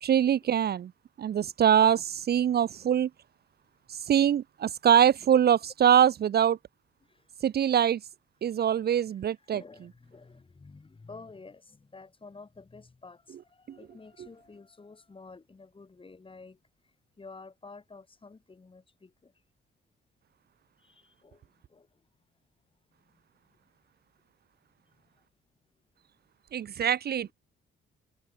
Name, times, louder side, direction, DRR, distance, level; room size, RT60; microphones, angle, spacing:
voice 1, 0.0-0.9 1.2-3.1 3.9-6.6 7.4-8.0 8.4-9.6 26.5-27.3, right 9 dB, 55° right, 0.9 m, -23 dB
voice 2, 9.2-19.3 20.8-22.0 23.0-23.2 24.8-25.2, left 4 dB, 25° left, 6.3 m, -51 dB
cardioid pair, 90°, 20 cm